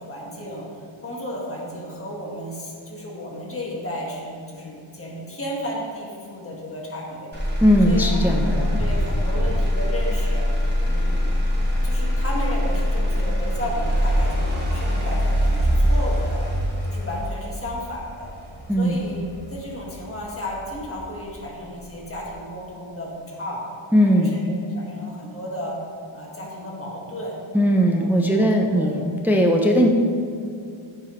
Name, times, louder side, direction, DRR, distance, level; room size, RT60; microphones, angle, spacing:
voice 1, 0.0-7.3 7.8-10.5 10.8-11.2 11.8-16.4 16.9-18.3 18.8-19.2 19.5-23.6 24.0-25.8 26.1-27.4 27.9-28.9, equal, 25° left, -3 dB, 1.4 m, -33 dB
Motor vehicle (road), 7.3-21.3 21.8-22.3, equal, 20° right, 1.2 m, -23 dB
voice 2, 7.6-8.7 18.7-19.0 23.9-24.4 27.5-29.0 29.2-29.9, equal, 5° right, 2 dB, 0.4 m, -18 dB
sound 1, 8.7-10.5, equal, 50° right, 1.4 m, -33 dB
8.9 x 4.8 x 3.0 m, 2.4 s
wide cardioid pair, 100°, 49 cm